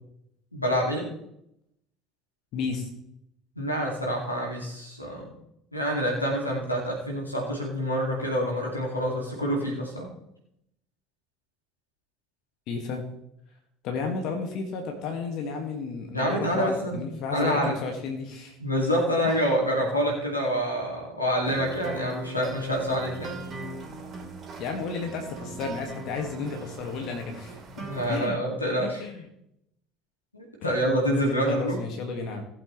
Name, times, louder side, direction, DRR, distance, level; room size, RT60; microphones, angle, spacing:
voice 1, 0.5-1.1 3.6-5.3 5.7-10.1 16.1-17.0 17.3-17.8 18.6-23.4 27.8-29.0 30.3-31.8, equal, 85° left, -1 dB, 2.5 m, -27 dB
voice 2, 2.5-2.9 12.7-13.1 13.8-18.6 19.2-19.3 24.5-27.6 28.1-28.4 28.8-29.2 30.6-30.9 31.1-32.4, left 4 dB, 50° left, 3 dB, 1.9 m, -33 dB
sound 1, 21.4-28.3, right 2 dB, 35° right, 2.8 m, -40 dB
18.5 x 7.8 x 3.2 m, 0.78 s
figure-of-eight pair, 60°, 0 cm